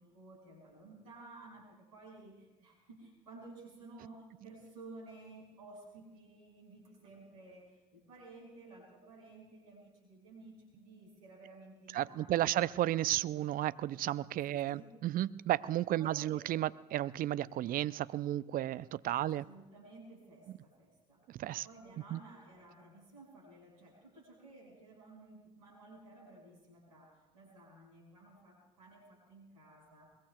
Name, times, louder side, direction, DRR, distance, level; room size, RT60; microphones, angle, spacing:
voice 1, 0.0-12.7 14.5-14.8 16.0-16.5 19.1-21.2 21.6-30.1, right 2 dB, 85° right, -2 dB, 5.6 m, -54 dB
voice 2, 11.9-19.4 21.3-21.6 22.1-22.2, right 13 dB, 50° right, 19 dB, 0.5 m, -33 dB
22.0 x 21.5 x 2.3 m, 1.1 s
hypercardioid pair, 50°, 19 cm